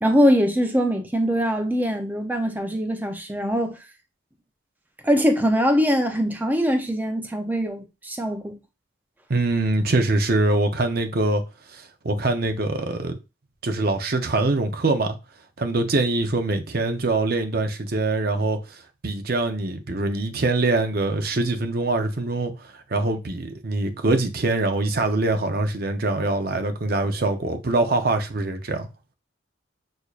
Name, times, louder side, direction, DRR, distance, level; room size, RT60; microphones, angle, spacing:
voice 1, 0.0-3.8 5.0-8.5, equal, 10° right, 0.5 m, -22 dB
voice 2, 9.3-11.4 11.7-13.2 13.6-15.2 15.6-18.8 19.0-28.9, right 2 dB, 50° right, 0.7 m, -23 dB
6.3 x 2.7 x 2.4 m
head